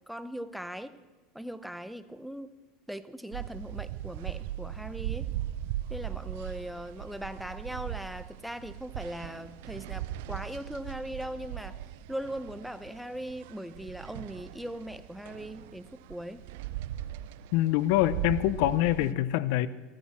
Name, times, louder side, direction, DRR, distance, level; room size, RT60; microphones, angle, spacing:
voice 1, 0.1-0.9 1.3-2.6 2.9-5.3 5.9-11.8 12.1-16.4 19.0-19.2, equal, ahead, 11 dB, 0.8 m, -39 dB
sound 1, 3.3-19.1, right 13 dB, 75° right, 0.5 m, -39 dB
voice 2, 17.5-19.7, left 15 dB, 70° left, 17 dB, 0.6 m, -25 dB
15.0 x 14.5 x 4.3 m, 1.3 s
supercardioid pair, 120°, 0 cm